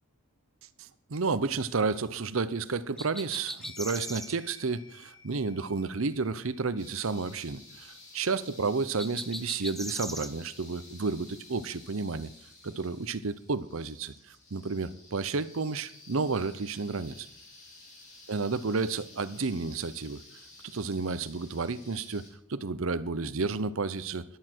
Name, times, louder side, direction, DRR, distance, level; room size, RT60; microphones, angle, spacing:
voice 1, 0.8-12.3 12.6-17.3 18.3-20.2 20.6-24.2, right 4 dB, 65° right, 15 dB, 0.7 m, -31 dB
sound 1, 3.0-4.4 9.0-10.3, equal, ahead, 0.5 m, -38 dB
sound 2, 3.6-12.2 12.5-12.6, left 5 dB, 65° left, 6.2 m, -58 dB
sound 3, 6.8-22.3, left 2 dB, 35° left, 4.1 m, -53 dB
14.0 x 11.5 x 4.5 m, 0.65 s
head